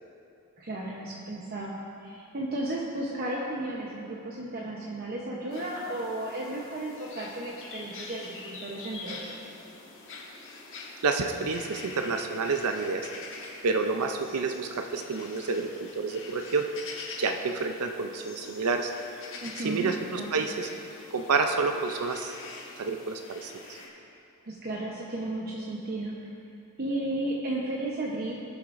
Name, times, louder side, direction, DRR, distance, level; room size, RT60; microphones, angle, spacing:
voice 1, 0.6-9.2 19.4-19.9 20.2-20.3 24.4-26.3 26.8-28.4, right 1 dB, 45° right, -3 dB, 0.9 m, -34 dB
sound 1, 5.5-23.9, left 3 dB, 60° left, 1.4 m, -45 dB
voice 2, 11.0-13.1 13.6-16.6 17.2-18.9 19.6-20.7 21.1-22.4 22.8-23.8, right 4 dB, 80° right, 5 dB, 0.5 m, -29 dB
18.5 x 7.0 x 2.6 m, 2.7 s
head